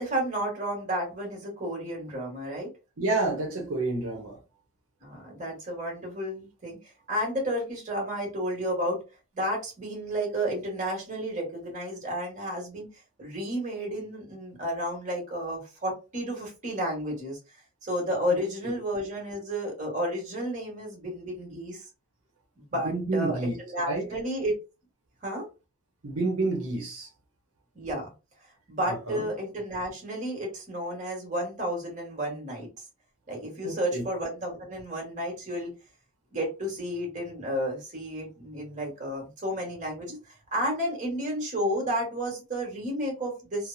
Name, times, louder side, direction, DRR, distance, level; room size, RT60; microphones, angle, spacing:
voice 1, 0.0-2.7 5.0-6.8 7.1-9.0 9.3-12.9 13.2-17.4 17.8-21.8 22.7-24.6 25.2-25.4 27.7-28.1 28.7-32.8 33.3-35.7 36.3-43.7, equal, 35° right, 1.3 m, -32 dB
voice 2, 3.0-4.4 18.3-18.4 22.8-23.6 23.9-24.1 26.0-27.1 28.9-29.3 33.6-34.0, right 2 dB, 85° right, 0.7 m, -29 dB
2.9 x 2.0 x 2.5 m
head